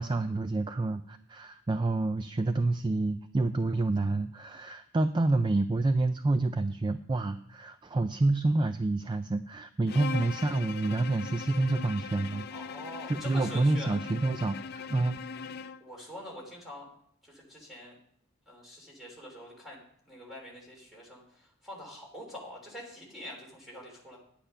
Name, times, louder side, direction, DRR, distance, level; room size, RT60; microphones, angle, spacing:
voice 1, 0.0-12.5 13.1-15.2, right 2 dB, 20° right, 10 dB, 0.3 m, -28 dB
Bowed string instrument, 9.9-15.9, left 6 dB, 45° left, 0.4 m, -40 dB
voice 2, 12.5-13.9 15.8-16.9 17.2-18.0 18.5-19.8 20.0-24.2, left 1 dB, ahead, -2 dB, 3.3 m, -45 dB
10.0 x 8.9 x 5.6 m, 0.67 s
head